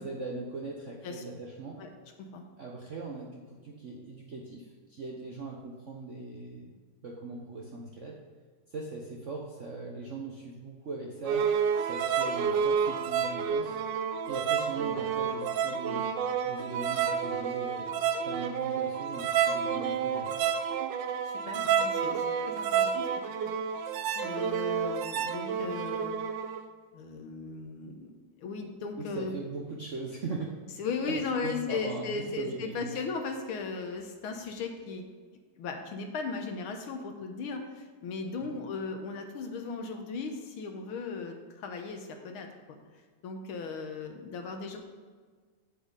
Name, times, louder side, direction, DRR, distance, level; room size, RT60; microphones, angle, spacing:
voice 1, 0.0-1.8 2.6-6.7 7.0-8.2 8.7-11.5 11.8-13.8 14.2-16.1 16.4-18.0 18.2-20.5 29.0-30.5 31.1-32.9 38.4-38.6, right 3 dB, 55° right, -2 dB, 0.8 m, -40 dB
sound 1, 11.3-26.6, right 7 dB, 70° right, 1.1 m, -30 dB
voice 2, 21.3-23.1 24.1-26.1 26.9-28.1 28.4-29.3 30.8-35.0 35.6-42.8 43.2-44.8, left 4 dB, 75° left, 4 dB, 1.8 m, -37 dB
8.4 x 7.8 x 3.9 m, 1.5 s
omnidirectional pair, 2.4 m